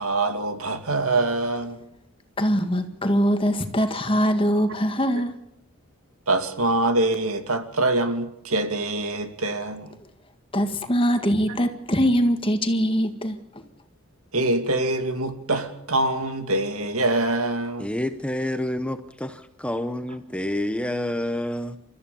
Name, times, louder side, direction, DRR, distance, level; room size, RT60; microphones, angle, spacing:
voice 1, 0.0-1.8 6.3-10.0 14.3-17.9, right 2 dB, 85° right, 2.6 m, -24 dB
voice 2, 2.4-5.3 10.5-13.6, equal, 25° left, 1.8 m, -22 dB
voice 3, 17.8-21.8, left 1 dB, 5° left, 0.8 m, -28 dB
29.0 x 14.0 x 7.1 m
head